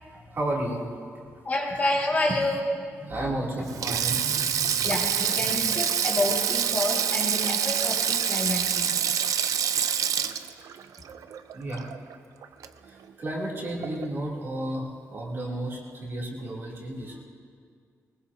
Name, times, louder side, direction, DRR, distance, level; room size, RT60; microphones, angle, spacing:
voice 1, 0.1-0.9 2.3-2.4 3.0-5.0 5.4-5.7 11.5-11.8 12.8-17.2, right 1 dB, 45° right, -4 dB, 2.9 m, -33 dB
voice 2, 1.5-2.6 4.8-9.0, left 2 dB, 30° left, -2 dB, 2.0 m, -28 dB
Sink (filling or washing), 3.7-12.1 12.4-12.7 13.8-14.1, right 8 dB, 85° right, 0.5 m, -26 dB
22.0 x 20.5 x 2.8 m, 2.2 s
wide cardioid pair, 150°, 6 cm